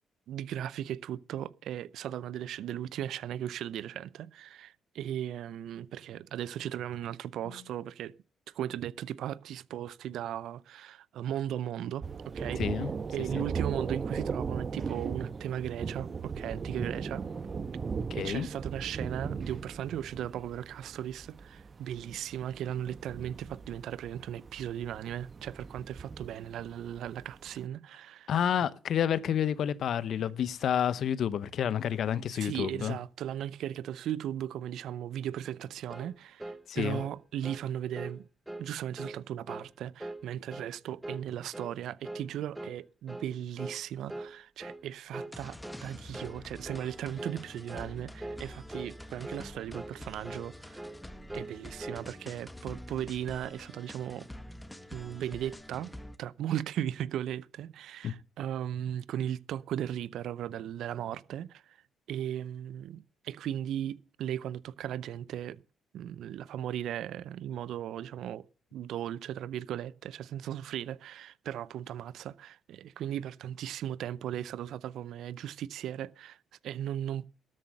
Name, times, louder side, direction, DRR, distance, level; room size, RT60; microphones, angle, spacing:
voice 1, 0.3-8.1 8.5-12.6 13.1-17.2 18.1-28.3 32.3-38.2 38.6-50.9 51.3-54.3 54.9-61.8 62.1-65.6 65.9-68.4 68.7-76.4 76.6-77.2, right 11 dB, 70° right, 0.6 m, -37 dB
Thunder, 12.0-27.5, right 5 dB, 45° right, 1.2 m, -38 dB
voice 2, 12.6-12.9 13.3-13.4 18.1-18.5 28.3-33.0 36.7-37.0 58.0-58.1, left 9 dB, 65° left, 0.8 m, -29 dB
sound 1, 35.9-36.1 36.4-36.6 36.9-37.1 37.4-37.7 37.9-38.2 38.5-38.7 39.0-39.2 39.5-39.7 40.0-40.2 40.5-40.7 41.0-41.3 41.5-41.8 42.0-42.3 42.5-42.8 43.1-43.3 43.6-43.8 44.1-44.3 44.6-44.8 45.1-45.3 45.6-45.8 46.1-46.4 46.6-46.9 47.2-47.4 47.7-47.9 48.2-48.4 48.7-48.9 49.2-49.5 49.7-50.0 50.2-50.5 50.7-51.0 51.3-51.5 51.8-52.0, right 1 dB, 15° right, 1.6 m, -41 dB
sound 2, 45.3-56.2, left 1 dB, 10° left, 1.5 m, -47 dB
13.0 x 7.7 x 6.6 m
hypercardioid pair, 55°, 0 cm